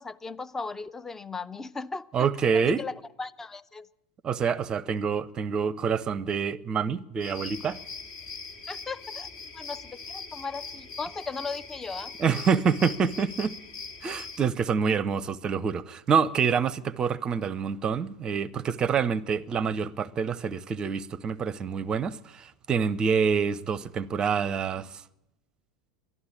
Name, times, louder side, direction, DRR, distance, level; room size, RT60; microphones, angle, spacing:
voice 1, 0.0-2.1 2.5-3.9 8.7-9.3 9.5-12.1, left 4 dB, 15° left, 0.5 m, -37 dB
voice 2, 2.1-2.8 4.2-7.8 12.2-13.5 14.0-25.0, right 6 dB, 25° right, 0.6 m, -27 dB
sound 1, 7.2-14.4, left 4 dB, 55° left, 2.4 m, -41 dB
12.5 x 11.5 x 8.7 m
figure-of-eight pair, 85°, 3 cm